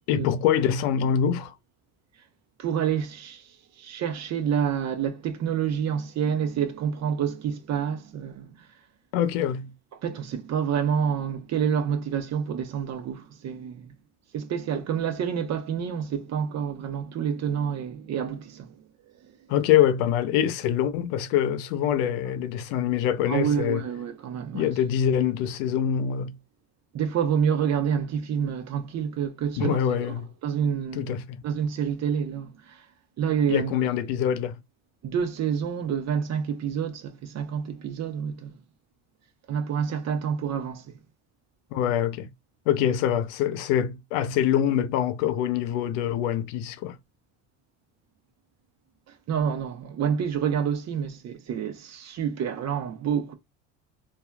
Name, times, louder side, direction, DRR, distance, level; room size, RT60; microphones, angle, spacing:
voice 1, 0.1-1.5 9.1-9.7 19.5-23.8 24.5-26.4 29.6-30.3 30.9-31.4 33.5-34.6 41.7-42.3 42.7-47.0, left 9 dB, 75° left, 0.6 m, -24 dB
voice 2, 2.6-3.5 3.8-8.5 10.0-13.9 14.3-18.7 23.3-24.7 26.9-30.1 30.4-31.2 31.4-32.8 33.2-33.7 35.0-38.5 39.5-40.8 49.3-53.3, right 8 dB, 45° right, 0.7 m, -28 dB
3.4 x 2.3 x 2.2 m
hypercardioid pair, 75°, 37 cm